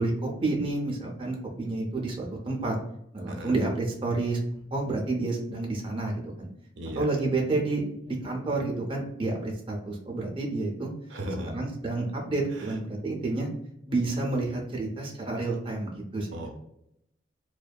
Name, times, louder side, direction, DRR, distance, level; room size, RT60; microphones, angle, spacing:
voice 1, 0.0-2.7 3.1-4.4 4.7-6.5 7.0-10.9 11.5-13.5 13.9-16.3, right 2 dB, 25° right, -1 dB, 0.4 m, -29 dB
voice 2, 6.8-7.1 11.1-11.6 12.6-12.7 16.3-16.6, right 1 dB, 80° right, 4 dB, 0.5 m, -36 dB
2.6 x 2.1 x 2.2 m, 0.78 s
head